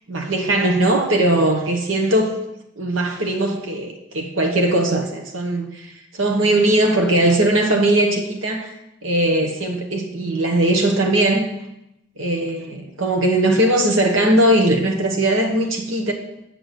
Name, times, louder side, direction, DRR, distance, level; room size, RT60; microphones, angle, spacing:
voice 1, 0.1-2.4 2.8-8.7 9.0-11.5 12.2-16.1, right 1 dB, 75° right, 2 dB, 1.2 m, -19 dB
8.7 x 6.1 x 6.7 m, 0.85 s
head